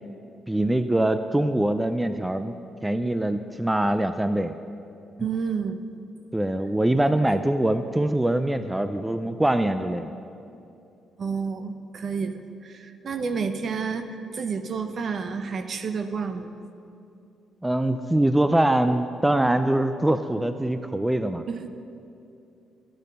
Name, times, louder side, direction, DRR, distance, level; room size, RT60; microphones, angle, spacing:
voice 1, 0.5-2.5 2.8-4.5 6.3-10.1 17.6-21.4, right 1 dB, 10° right, 10 dB, 0.4 m, -23 dB
voice 2, 5.2-5.8 7.9-8.0 11.2-12.3 12.6-16.6 21.5-21.7, right 5 dB, 50° right, 9 dB, 0.7 m, -30 dB
12.0 x 8.8 x 5.4 m, 2.7 s
cardioid pair, 90°, 0 cm